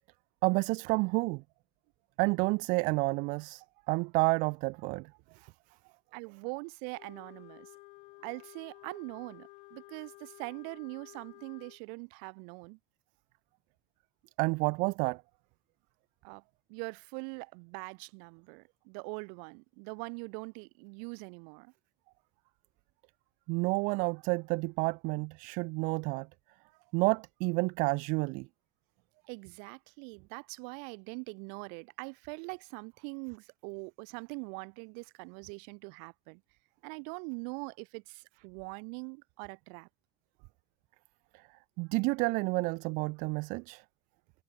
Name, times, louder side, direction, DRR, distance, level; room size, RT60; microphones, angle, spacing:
voice 1, 0.4-1.4 2.2-5.5 14.4-15.2 23.5-26.3 26.9-28.5 41.3-41.4 41.8-43.8, right 28 dB, 65° right, 0.7 m, -30 dB
voice 2, 6.1-7.7 8.2-12.8 16.2-16.4 16.7-21.7 29.3-36.4 36.8-39.9, right 40 dB or more, 80° right, 1.5 m, -43 dB
Wind instrument woodwind instrument, 6.9-11.8, left 23 dB, 60° left, 4.2 m, -53 dB
cardioid pair, 170°, 15 cm